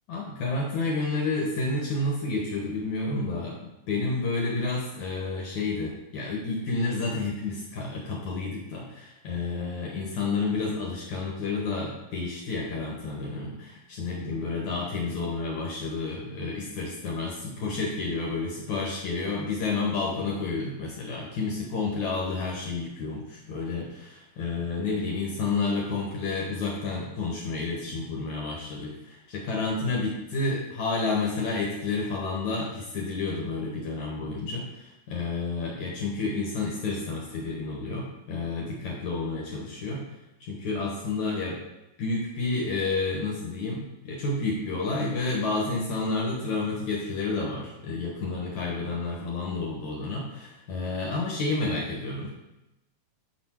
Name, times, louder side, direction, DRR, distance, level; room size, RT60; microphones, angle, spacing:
voice 1, 0.1-40.0 40.4-41.6 42.0-52.3, left 3 dB, 65° left, -3 dB, 2.2 m, -30 dB
6.9 x 6.3 x 4.5 m, 0.92 s
omnidirectional pair, 4.3 m